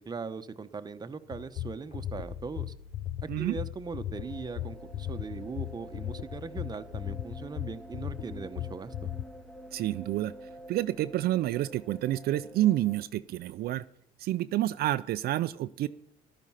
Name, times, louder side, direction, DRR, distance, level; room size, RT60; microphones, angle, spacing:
voice 1, 0.0-2.7 3.2-9.1, right 4 dB, 25° right, 10 dB, 0.9 m, -40 dB
sound 1, 1.3-9.3, left 12 dB, 55° left, 0.6 m, -37 dB
sound 2, 1.9-13.2, left 3 dB, 85° left, 7.5 m, -53 dB
sound 3, 4.1-13.0, right 1 dB, 5° left, 0.9 m, -49 dB
voice 2, 9.7-10.3 10.7-13.8 14.2-15.9, right 14 dB, 65° right, 12 dB, 0.5 m, -29 dB
14.0 x 12.0 x 5.7 m, 0.72 s
cardioid pair, 110°, 17 cm